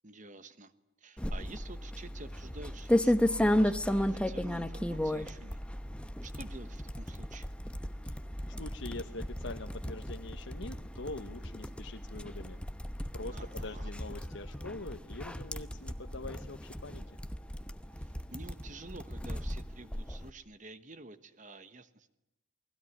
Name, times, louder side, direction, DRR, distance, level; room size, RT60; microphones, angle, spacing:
voice 1, 0.0-0.7 1.0-5.6 6.2-7.5 13.3-13.9 17.9-22.2, right 2 dB, 40° right, 12 dB, 1.2 m, -49 dB
sound 1, 1.2-20.3, equal, 5° left, 0.9 m, -34 dB
voice 2, 8.5-12.6 13.1-17.0, left 2 dB, 65° left, 5 dB, 1.2 m, -44 dB
29.0 x 20.0 x 9.8 m, 0.91 s
head